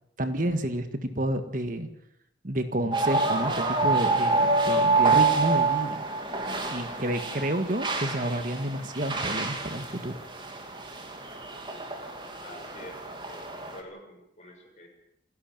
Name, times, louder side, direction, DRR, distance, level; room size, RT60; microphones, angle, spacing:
voice 1, 0.2-1.9 2.4-6.0 6.7-10.2, right 1 dB, 45° right, 8 dB, 1.8 m, -30 dB
sound 1, 2.9-13.8, right 3 dB, 25° right, 2.9 m, -27 dB
voice 2, 12.4-14.9, left 1 dB, 40° left, 1 dB, 7.2 m, -47 dB
29.0 x 11.5 x 9.2 m, 0.79 s
head